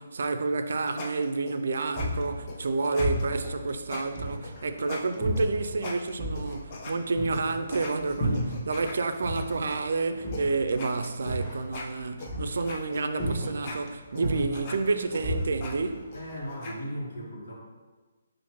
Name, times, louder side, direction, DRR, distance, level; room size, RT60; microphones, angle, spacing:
voice 1, 0.0-16.0, right 3 dB, 70° right, 0.3 m, -29 dB
sound 1, 0.5-7.0 7.3-9.8 10.3-10.4 10.7-16.8, left 3 dB, 30° left, 0.5 m, -41 dB
sound 2, 1.9-4.8 5.2-8.9 9.2-12.9 13.2-13.8 14.1-16.4, right 1 dB, 15° left, 1.5 m, -33 dB
voice 2, 16.1-17.5, equal, 70° left, 1.3 m, -37 dB
5.6 x 2.5 x 3.0 m
hypercardioid pair, 165°, 0 cm